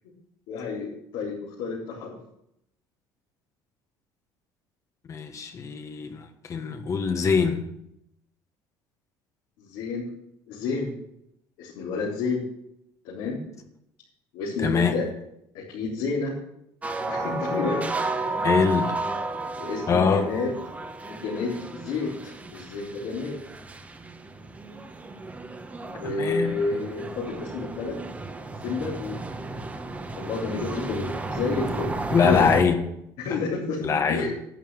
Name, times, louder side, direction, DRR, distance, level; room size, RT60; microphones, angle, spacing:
voice 1, 0.5-2.2 9.6-10.1 10.5-10.9 11.6-12.4 13.0-13.4 14.3-15.0 15.5-16.3 17.1-17.8 18.2-18.3 19.6-20.5 21.1-23.3 25.8-28.0 28.6-29.1 30.2-31.9 32.2-32.6 33.2-34.4, left 4 dB, 80° left, -6 dB, 3.9 m, -30 dB
voice 2, 5.1-7.6 14.6-14.9 18.4-19.0 19.9-20.3 26.0-26.5 32.1-32.8 33.3-33.4 33.8-34.3, left 6 dB, 40° left, 7 dB, 1.4 m, -23 dB
sound 1, 16.8-32.6, right 2 dB, 15° right, 1.2 m, -33 dB
11.0 x 9.0 x 6.3 m, 0.78 s
cardioid pair, 120°, 8 cm